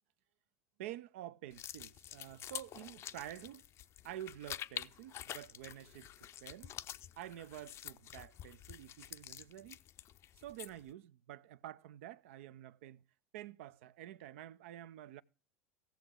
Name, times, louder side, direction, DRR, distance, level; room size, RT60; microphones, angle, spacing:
voice 1, 0.8-3.6 4.0-6.8 7.2-9.8 10.4-13.0 13.3-15.2, right 13 dB, 75° right, 0.6 m, -49 dB
sound 1, 1.5-10.9, left 12 dB, 40° left, 0.5 m, -48 dB
16.5 x 7.0 x 3.7 m
supercardioid pair, 110°, 7 cm